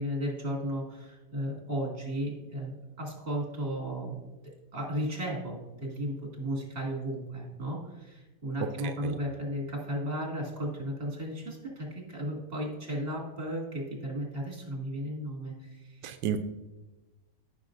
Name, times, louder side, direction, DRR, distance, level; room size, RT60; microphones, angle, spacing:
voice 1, 0.0-4.2 4.7-16.1, equal, 35° right, -2 dB, 2.6 m, -35 dB
voice 2, 8.6-9.2 16.0-16.4, right 8 dB, 90° right, 8 dB, 1.2 m, -33 dB
14.5 x 6.3 x 2.6 m, 1.1 s
omnidirectional pair, 1.8 m